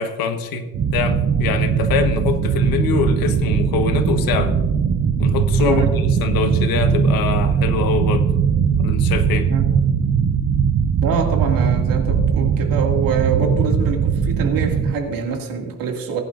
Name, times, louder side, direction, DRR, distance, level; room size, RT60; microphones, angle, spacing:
voice 1, 0.0-4.6 5.2-8.3 8.8-9.5, left 6 dB, 85° left, 8 dB, 1.3 m, -24 dB
sound 1, 0.7-14.9, right 6 dB, 35° right, 0.6 m, -19 dB
voice 2, 5.6-5.9 9.5-9.7 11.0-16.2, right 5 dB, 75° right, 2 dB, 2.2 m, -25 dB
20.5 x 11.0 x 2.5 m, 1.3 s
cardioid pair, 165°, 34 cm